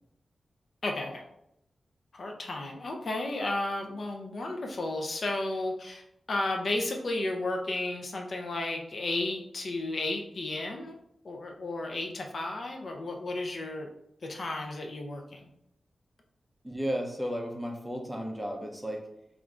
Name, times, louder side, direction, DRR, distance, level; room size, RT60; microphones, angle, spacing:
voice 1, 0.8-1.2 2.1-10.9 11.2-13.9 14.2-15.5, left 2 dB, 50° left, 2 dB, 0.5 m, -33 dB
voice 2, 16.6-19.0, equal, 5° right, 1 dB, 0.5 m, -33 dB
3.3 x 2.5 x 3.5 m, 0.78 s
wide cardioid pair, 150°, 0 cm